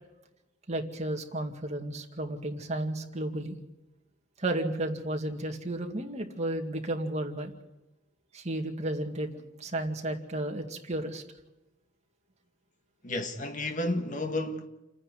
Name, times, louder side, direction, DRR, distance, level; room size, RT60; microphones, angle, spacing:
voice 1, 0.7-3.6 4.4-7.5 8.3-11.2, right 1 dB, 35° right, 2.2 m, -33 dB
voice 2, 13.0-14.7, left 1 dB, 40° left, 1.7 m, -31 dB
29.0 x 9.9 x 9.4 m
head